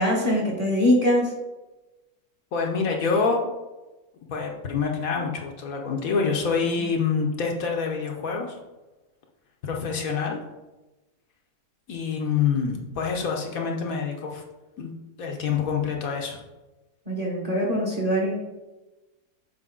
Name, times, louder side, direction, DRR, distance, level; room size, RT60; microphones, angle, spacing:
voice 1, 0.0-1.3 6.8-6.9 17.1-18.4, equal, 25° right, -3 dB, 1.2 m, -23 dB
voice 2, 2.5-3.4 4.3-8.6 9.6-10.4 11.9-14.4 14.8-14.9 15.2-16.4, left 5 dB, 65° left, 1 dB, 1.1 m, -26 dB
6.8 x 4.5 x 3.7 m, 1.1 s
omnidirectional pair, 1.7 m